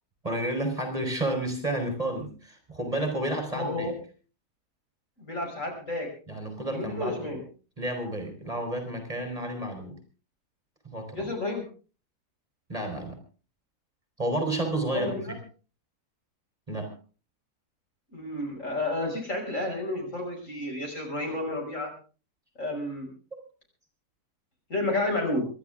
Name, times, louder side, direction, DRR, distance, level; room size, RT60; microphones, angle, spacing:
voice 1, 0.2-3.9 6.3-7.4 7.8-10.0 10.8-11.3 12.7-13.2 14.2-15.4 16.7-16.9, right 1 dB, 20° right, 4 dB, 3.6 m, -31 dB
voice 2, 3.5-3.9 5.2-6.1 6.6-7.4 11.1-11.6 14.9-15.2 18.1-21.9 22.6-23.1 24.7-25.5, left 2 dB, 50° left, 1 dB, 6.2 m, -31 dB
26.5 x 12.0 x 3.5 m, 0.36 s
omnidirectional pair, 1.7 m